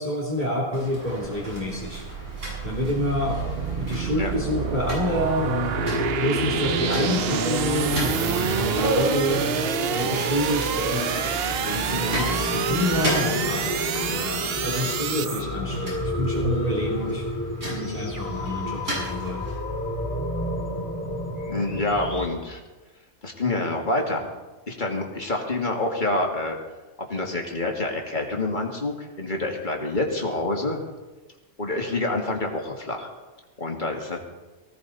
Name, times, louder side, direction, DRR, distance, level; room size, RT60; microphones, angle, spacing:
voice 1, 0.0-2.0 2.6-5.7 6.2-9.5 9.9-11.2 11.6-17.2 17.7-19.4, left 1 dB, 35° right, -3 dB, 3.1 m, -28 dB
sound 1, 0.7-19.6, right 1 dB, 85° right, 7.7 m, -35 dB
sound 2, 1.2-15.4, right 8 dB, 60° right, 0.9 m, -28 dB
sound 3, 5.7-22.3, left 1 dB, 15° left, 2.6 m, -30 dB
voice 2, 21.5-22.6 23.2-24.3 24.7-26.6 27.1-30.8 31.6-33.1 33.6-34.2, left 2 dB, 40° left, 1 dB, 2.5 m, -27 dB
19.0 x 16.5 x 4.2 m, 1.2 s
omnidirectional pair, 1.3 m